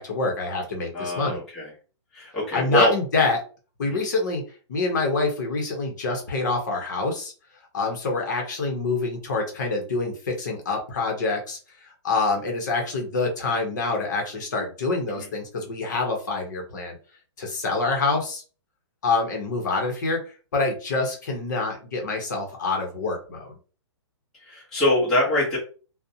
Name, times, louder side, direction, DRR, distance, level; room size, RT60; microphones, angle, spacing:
voice 1, 0.0-1.4 2.5-3.4 3.8-4.4 4.7-7.3 7.7-11.6 12.0-17.0 17.4-18.4 19.0-20.2 20.5-23.6, left 3 dB, 40° left, 1 dB, 0.7 m, -26 dB
voice 2, 0.9-1.7 2.1-2.9 3.8-4.0 15.2-15.3 24.4-25.6, left 1 dB, ahead, -11 dB, 0.6 m, -24 dB
2.5 x 2.0 x 2.6 m, 0.37 s
hypercardioid pair, 180°, 16 cm